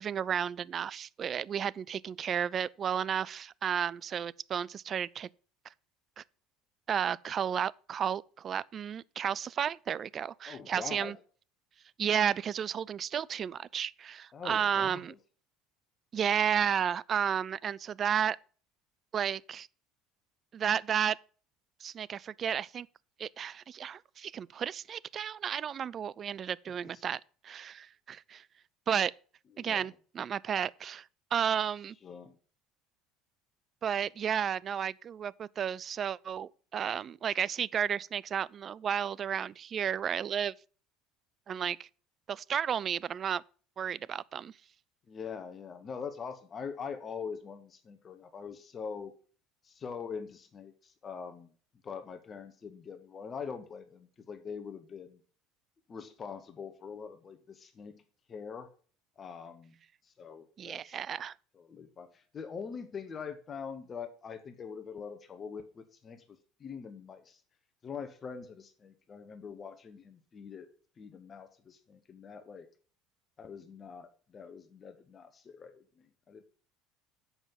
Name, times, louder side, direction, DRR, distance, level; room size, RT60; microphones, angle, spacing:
voice 1, 0.0-5.3 6.2-6.3 6.9-11.2 12.0-15.1 16.1-18.4 19.1-19.7 20.5-21.2 21.8-22.9 23.2-28.4 28.9-29.1 29.6-31.1 31.3-32.0 33.8-40.5 41.5-41.9 42.3-43.4 43.8-44.5 60.6-61.3, right 8 dB, 40° right, 0.3 m, -32 dB
voice 2, 10.5-11.2 14.3-15.2 26.9-27.0 29.6-29.9 32.0-32.4 45.1-49.1 49.6-51.5 51.8-55.2 55.9-58.0 58.3-58.7 59.2-59.7 60.0-61.0 61.5-66.2 66.6-67.4 67.8-70.7 71.0-72.7 73.4-76.4, left 6 dB, 35° left, 1.1 m, -43 dB
7.1 x 5.4 x 7.2 m
hypercardioid pair, 75°, 0 cm